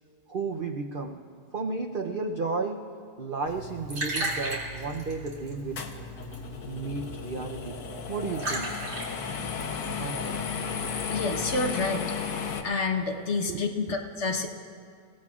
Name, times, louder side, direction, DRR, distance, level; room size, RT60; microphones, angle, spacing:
voice 1, 0.3-1.2 1.5-2.9 3.2-5.9 6.7-7.8 8.1-9.1 9.8-10.4 13.5-13.6, right 4 dB, 60° right, 2 dB, 0.5 m, -33 dB
Liquid, 3.5-11.6, right 1 dB, 80° right, 3.0 m, -37 dB
sound 1, 5.8-12.6, left 6 dB, 70° left, 1.4 m, -34 dB
voice 2, 11.1-12.1 12.6-14.5, left 3 dB, 50° left, 2 dB, 1.2 m, -28 dB
27.5 x 17.0 x 2.4 m, 2.4 s
omnidirectional pair, 1.8 m